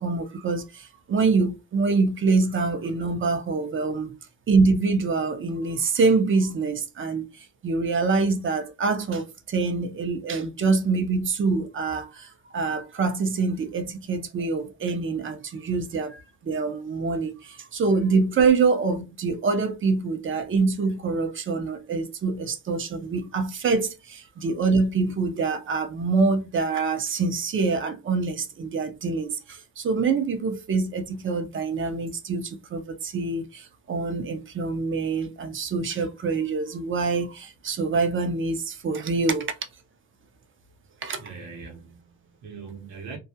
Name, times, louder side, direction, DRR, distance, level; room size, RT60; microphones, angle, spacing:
voice 1, 0.0-4.1 4.5-39.5 41.0-41.2, right 4 dB, 40° right, 0.6 m, -25 dB
voice 2, 41.2-43.2, right 5 dB, 70° right, 0.9 m, -41 dB
2.3 x 2.1 x 2.7 m
cardioid pair, 90°, 30 cm